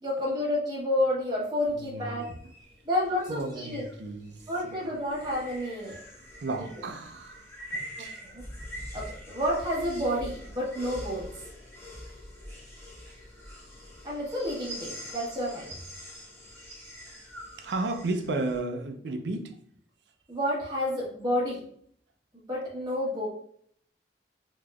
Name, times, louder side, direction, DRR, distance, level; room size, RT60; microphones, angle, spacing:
voice 1, 0.0-2.3 2.8-3.9 4.5-6.0 6.6-6.7 8.0-8.1 8.3-8.4 8.9-11.3 14.0-15.7 20.3-21.6 22.5-23.3, left 1 dB, 25° right, -6 dB, 1.0 m, -30 dB
sound 1, 1.6-18.6, equal, 15° left, 1.0 m, -44 dB
voice 2, 1.8-2.3 3.3-4.4 4.7-4.9 6.4-7.4 7.7-8.2 17.6-19.5, right 2 dB, 75° right, 5 dB, 0.5 m, -33 dB
3.4 x 2.9 x 2.3 m, 0.63 s
head